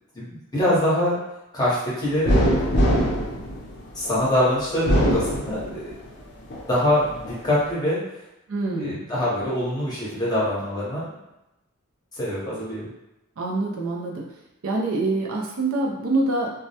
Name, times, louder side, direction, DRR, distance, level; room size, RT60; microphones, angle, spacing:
voice 1, 0.1-1.2 1.5-2.7 3.9-5.8 6.7-8.0 8.8-11.0 12.1-12.9, left 1 dB, 20° left, -8 dB, 0.8 m, -24 dB
sound 1, 2.2-4.2 4.7-6.0 6.5-7.4, equal, 50° left, 0.5 m, -22 dB
voice 2, 8.5-9.0 13.4-14.2 14.6-16.5, right 2 dB, 65° right, -2 dB, 0.4 m, -25 dB
2.2 x 2.0 x 2.7 m, 0.92 s
head